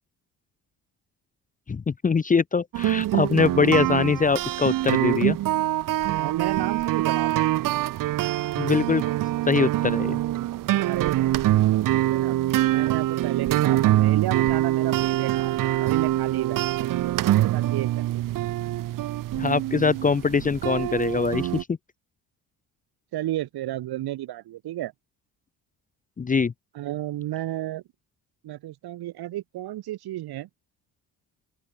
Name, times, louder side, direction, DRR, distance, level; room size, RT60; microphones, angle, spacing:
voice 1, 1.7-5.4 8.6-9.0 9.5-10.2 19.3-21.8 26.2-26.5, left 5 dB, 20° left, 0.8 m, -23 dB
sound 1, 2.7-21.6, right 14 dB, 55° right, 0.8 m, -24 dB
voice 2, 6.1-7.5 10.8-11.4 12.1-12.4 12.7-18.3 23.1-24.9 26.7-27.8 28.4-30.5, right 14 dB, 75° right, 7.5 m, -33 dB
open air
cardioid pair, 130°, 38 cm